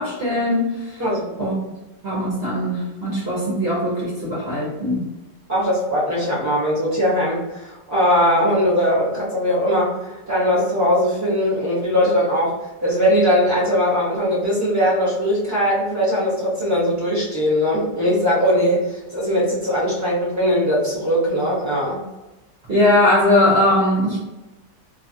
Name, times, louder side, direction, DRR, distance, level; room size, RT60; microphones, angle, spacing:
voice 1, 0.0-1.0 1.4-1.5 2.0-5.1 22.7-24.2, left 1 dB, 50° right, -7 dB, 0.8 m, -20 dB
voice 2, 1.0-1.5 5.5-22.0, equal, 15° right, -7 dB, 0.6 m, -20 dB
2.8 x 2.3 x 2.7 m, 1.0 s
omnidirectional pair, 2.0 m